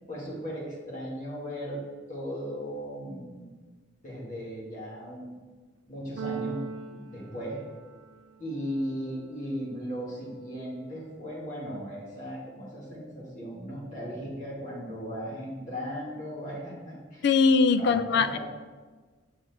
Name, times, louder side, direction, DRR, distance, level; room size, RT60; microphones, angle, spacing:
voice 1, 0.1-1.8 2.1-3.5 4.0-5.5 5.9-6.6 6.8-7.6 8.4-17.3 17.7-18.4, equal, 45° left, -6 dB, 2.1 m, -37 dB
Keyboard (musical), 6.2-8.3, right 6 dB, 80° right, 0.3 m, -39 dB
voice 2, 17.2-18.4, left 4 dB, 60° left, 12 dB, 0.3 m, -21 dB
6.9 x 5.3 x 3.6 m, 1.4 s
head